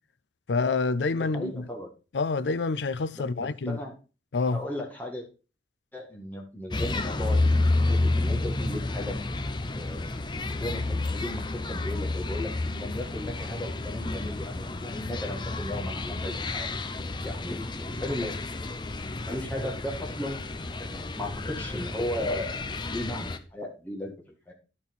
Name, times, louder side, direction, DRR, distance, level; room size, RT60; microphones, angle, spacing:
voice 1, 0.5-1.5 2.1-3.8 4.3-4.6, left 3 dB, 85° left, 0.5 m, -27 dB
voice 2, 1.2-1.9 3.1-3.9 4.5-5.3 5.9-7.4 7.9-9.2 9.7-16.7 17.2-18.3 19.3-20.4 20.8-22.6 22.9-24.5, left 1 dB, 10° left, 1.9 m, -36 dB
sound 1, 6.7-23.4, left 2 dB, 25° left, 0.6 m, -30 dB
10.5 x 4.3 x 5.4 m
head